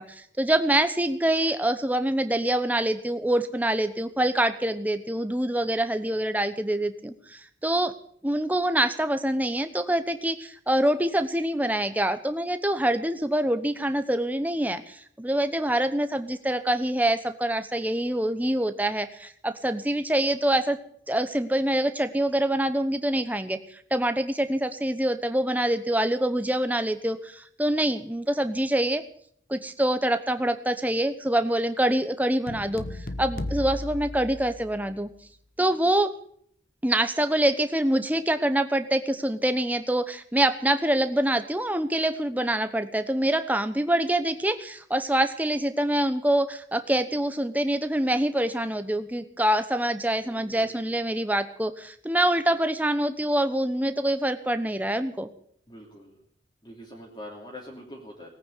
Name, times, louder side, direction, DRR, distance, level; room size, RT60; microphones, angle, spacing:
voice 1, 0.0-7.9 8.2-20.8 21.1-29.0 29.5-32.8 33.2-35.1 35.6-36.1 36.8-55.3, right 1 dB, 10° right, 9 dB, 1.0 m, -25 dB
sound 1, 32.5-35.0, left 1 dB, 50° left, 1.2 m, -35 dB
voice 2, 50.2-50.8 55.7-56.2 56.6-58.3, left 1 dB, 25° left, -2 dB, 3.0 m, -44 dB
18.5 x 9.5 x 8.3 m, 0.62 s
head